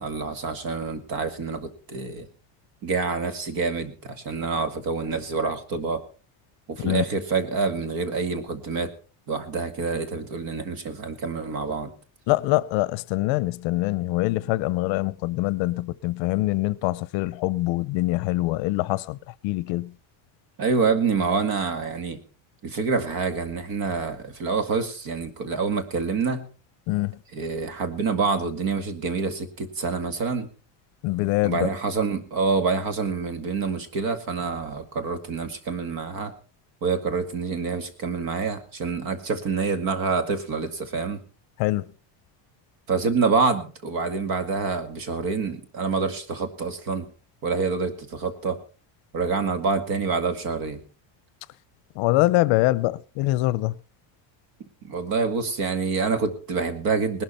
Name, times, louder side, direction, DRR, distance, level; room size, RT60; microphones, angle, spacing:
voice 1, 0.0-2.3 2.8-6.0 6.7-8.9 9.3-11.9 20.6-22.2 22.6-26.5 27.3-30.5 31.4-36.3 36.8-41.2 42.9-47.1 47.4-48.6 49.1-50.8 54.8-57.2, right 4 dB, 45° right, 2.1 m, -27 dB
voice 2, 12.3-19.2 19.4-19.9 26.9-27.2 31.0-31.6 41.6-41.8 52.0-53.7, left 19 dB, 70° left, 0.8 m, -24 dB
19.5 x 12.5 x 4.3 m
cardioid pair, 175°, 47 cm